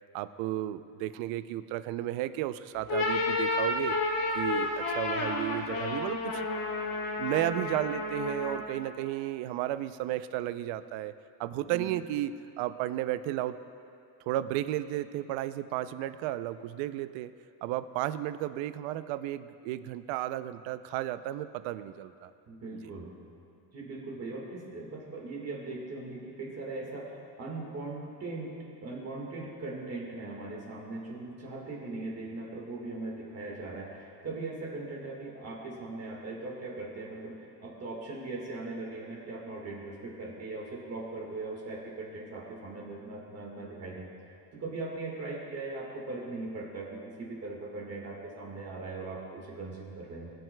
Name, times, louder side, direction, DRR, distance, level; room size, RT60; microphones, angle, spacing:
voice 1, 0.1-4.0 4.3-6.4 7.2-11.1 11.4-13.6 14.3-17.3 17.6-22.3 22.7-22.9, right 13 dB, 85° right, 13 dB, 0.6 m, -33 dB
sound 1, 2.7-8.8, left 2 dB, 50° left, 1.3 m, -31 dB
voice 2, 22.4-23.1 23.7-28.5 28.8-50.3, right 3 dB, 35° right, -2 dB, 1.7 m, -39 dB
21.5 x 7.8 x 2.2 m, 2.5 s
cardioid pair, 145°, 45 cm